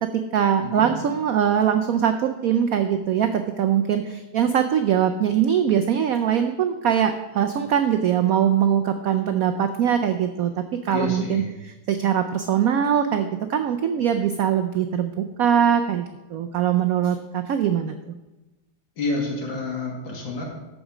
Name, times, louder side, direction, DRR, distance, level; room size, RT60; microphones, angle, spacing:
voice 1, 0.0-18.1, right 9 dB, 80° right, 7 dB, 0.8 m, -22 dB
voice 2, 0.6-0.9 10.9-11.5 19.0-20.4, left 3 dB, 75° left, -1 dB, 2.7 m, -29 dB
13.5 x 5.0 x 5.0 m, 1.0 s
omnidirectional pair, 2.1 m